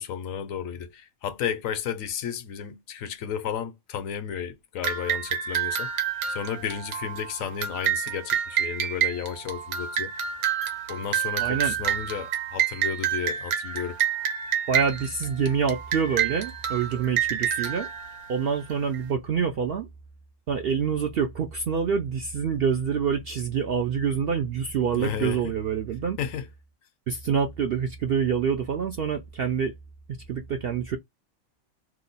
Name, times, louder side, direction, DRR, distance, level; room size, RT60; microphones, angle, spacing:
voice 1, 0.0-5.9 6.3-10.1 10.9-14.0 24.9-25.5 26.2-26.5, left 8 dB, 75° left, 1.0 m, -33 dB
sound 1, 4.8-19.0, right 9 dB, 90° right, 1.3 m, -28 dB
voice 2, 11.4-11.7 14.7-17.9 18.3-19.9 20.5-26.2 27.1-29.7 30.3-31.0, right 6 dB, 65° right, 0.6 m, -26 dB
3.0 x 2.1 x 3.9 m
omnidirectional pair, 1.5 m